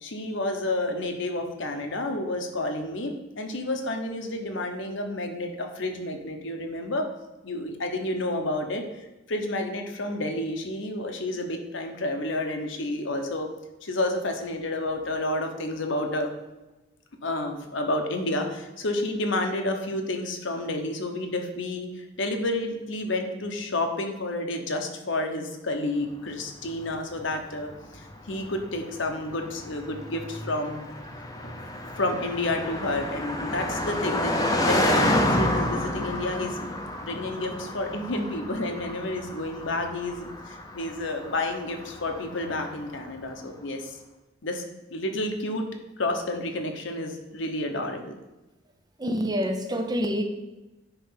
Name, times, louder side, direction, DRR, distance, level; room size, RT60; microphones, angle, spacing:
voice 1, 0.0-7.1 7.4-13.5 13.8-16.3 17.2-30.9 31.4-31.5 32.0-36.7 37.0-44.0 44.4-44.6 44.9-45.7 46.0-48.1, left 1 dB, 65° left, 4 dB, 1.1 m, -30 dB
Car passing by, 26.7-43.1, left 1 dB, 20° left, 0.8 m, -30 dB
voice 2, 49.0-50.2, equal, 20° right, 5 dB, 0.7 m, -26 dB
9.8 x 3.3 x 5.7 m, 1.0 s
head